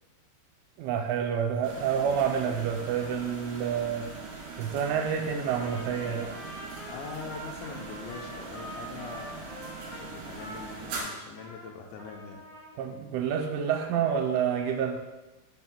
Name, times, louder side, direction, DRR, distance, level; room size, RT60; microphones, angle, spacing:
voice 1, 0.8-4.1 4.6-6.4 12.8-15.0, right 7 dB, 85° right, 3 dB, 3.1 m, -28 dB
sound 1, 1.6-11.0, right 4 dB, 65° right, 3.8 m, -41 dB
Trumpet, 5.4-11.7 12.0-12.7, equal, 50° left, 1.4 m, -45 dB
voice 2, 6.9-12.4, left 5 dB, 80° left, 1 dB, 2.8 m, -43 dB
8.5 x 6.6 x 2.2 m, 1.1 s
omnidirectional pair, 5.5 m